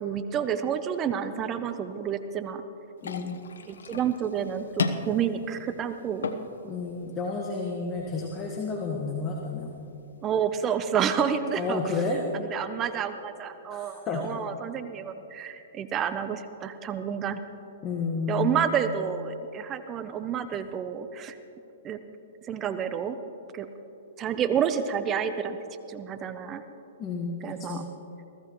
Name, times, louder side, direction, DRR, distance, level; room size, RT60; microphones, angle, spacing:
voice 1, 0.0-2.6 3.7-6.3 10.2-12.0 12.3-17.4 18.3-21.4 21.8-22.0 22.5-23.2 23.5-23.7 24.2-25.6 25.9-26.6 27.4-27.8, right 8 dB, 25° right, 10 dB, 0.7 m, -29 dB
sound 1, 3.0-11.0, left 5 dB, 85° left, 1.0 m, -37 dB
voice 2, 3.0-3.4 6.6-9.7 11.5-12.2 13.7-14.3 17.8-18.8 27.0-27.9, left 4 dB, 25° left, 0 dB, 1.5 m, -31 dB
22.0 x 15.0 x 3.1 m, 2.9 s
hypercardioid pair, 130°, 0 cm